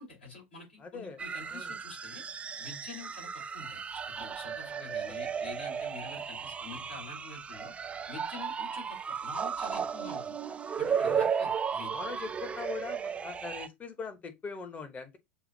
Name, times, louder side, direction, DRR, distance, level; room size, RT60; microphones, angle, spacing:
voice 1, 0.0-2.2 2.6-3.8 4.1-7.7 8.1-10.3 10.8-12.3, left 3 dB, 75° left, 3.2 m, -47 dB
voice 2, 0.8-1.7 4.7-4.9 11.0-11.2 11.9-15.2, left 4 dB, 25° left, 1.1 m, -41 dB
sound 1, 1.2-13.7, right 7 dB, 20° right, 0.4 m, -35 dB
7.0 x 2.4 x 2.7 m
figure-of-eight pair, 80°, 6 cm